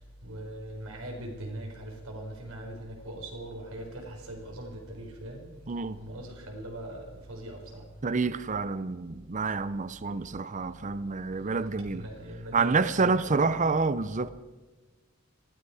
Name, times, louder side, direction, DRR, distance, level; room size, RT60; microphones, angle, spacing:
voice 1, 0.0-5.4 6.0-7.9 11.4-13.5, right 1 dB, 80° right, 4.6 m, -41 dB
voice 2, 5.7-6.0 8.0-12.1 12.5-14.3, right 4 dB, 35° right, 0.6 m, -28 dB
19.5 x 14.5 x 4.9 m
head